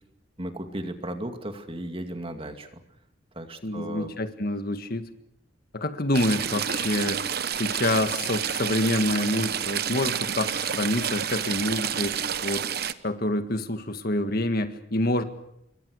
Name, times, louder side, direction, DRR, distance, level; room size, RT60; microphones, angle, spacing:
voice 1, 0.4-2.7 3.4-4.1, right 1 dB, 30° right, 6 dB, 2.4 m, -35 dB
voice 2, 3.6-5.1 5.7-7.3 7.6-12.6 13.0-15.2, left 1 dB, 55° left, 8 dB, 1.7 m, -27 dB
Stream / Trickle dribble, 6.1-12.9, right 8 dB, 55° right, 1.1 m, -29 dB
27.5 x 23.0 x 6.5 m, 0.79 s
head